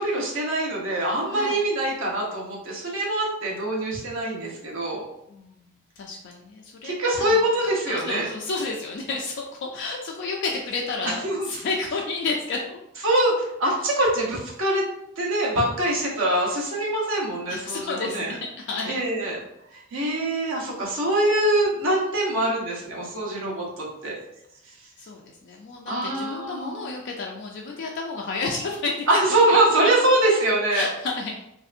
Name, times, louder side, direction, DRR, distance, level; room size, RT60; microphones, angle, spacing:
voice 1, 0.0-5.0 6.8-8.3 11.2-11.6 13.0-14.8 15.2-18.4 18.8-19.4 19.7-24.2 25.9-26.8 29.1-30.9, right 1 dB, 65° right, -2 dB, 0.9 m, -24 dB
voice 2, 6.0-12.8 17.5-18.4 18.7-19.0 25.0-29.1 29.8-29.9 30.7-31.4, left 3 dB, 55° left, 0 dB, 0.3 m, -31 dB
3.2 x 2.7 x 2.4 m, 0.80 s
head